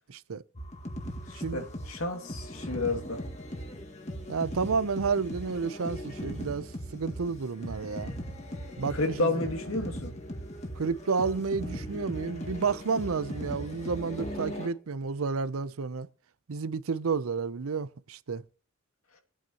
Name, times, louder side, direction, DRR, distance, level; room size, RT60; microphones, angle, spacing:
voice 1, 0.1-0.4 1.4-1.6 4.3-8.1 8.8-9.3 10.8-16.1 16.5-18.4, right 5 dB, 90° right, 0.6 m, -31 dB
sound 1, 0.6-14.7, equal, 35° left, 1.9 m, -39 dB
voice 2, 1.3-3.2 8.9-10.2, left 2 dB, 85° left, 2.4 m, -31 dB
24.5 x 8.9 x 3.0 m
head